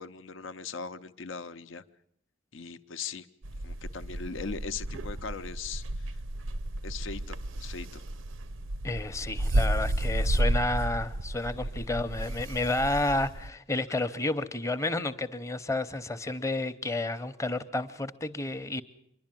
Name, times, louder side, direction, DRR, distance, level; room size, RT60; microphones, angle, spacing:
voice 1, 0.0-1.8 2.5-3.3 3.6-6.2 6.8-8.0 11.4-11.6, left 5 dB, 75° left, 12 dB, 0.7 m, -40 dB
sound 1, 3.4-13.5, right 1 dB, 90° right, 0.7 m, -32 dB
voice 2, 8.8-18.8, left 2 dB, 15° left, 10 dB, 0.7 m, -31 dB
25.5 x 11.5 x 9.0 m, 0.70 s
head